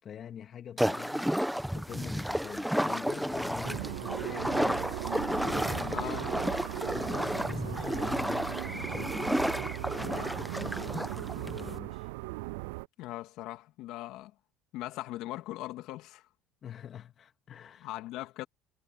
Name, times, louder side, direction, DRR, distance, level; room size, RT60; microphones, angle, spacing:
voice 1, 0.0-1.3 1.7-4.9 5.3-6.3 6.9-9.2 9.9-12.1 16.6-17.9, left 9 dB, 45° left, 2.9 m, -45 dB
sound 1, 0.8-11.8, equal, ahead, 1.2 m, -32 dB
sound 2, 3.6-12.9, right 24 dB, 80° right, 0.3 m, -38 dB
voice 2, 5.9-6.3 13.0-14.3 14.7-16.3 17.8-18.4, left 16 dB, 70° left, 2.8 m, -40 dB
supercardioid pair, 80°, 0 cm